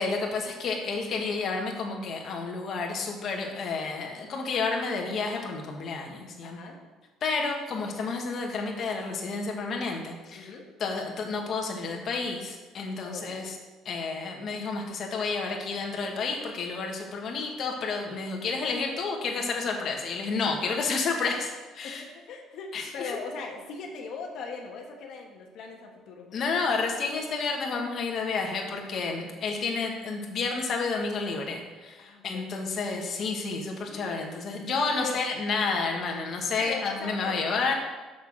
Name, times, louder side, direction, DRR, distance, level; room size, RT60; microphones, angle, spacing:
voice 1, 0.0-6.6 7.2-10.5 10.8-13.6 13.8-22.0 22.7-23.2 26.3-37.7, left 4 dB, 40° left, 1 dB, 1.5 m, -30 dB
voice 2, 6.4-6.8 10.4-10.6 12.9-13.5 21.8-26.4 32.0-32.6 33.8-34.4 35.0-35.2 36.6-37.4, left 4 dB, 60° left, 1 dB, 1.3 m, -40 dB
6.5 x 6.5 x 6.3 m, 1.2 s
cardioid pair, 150°, 0 cm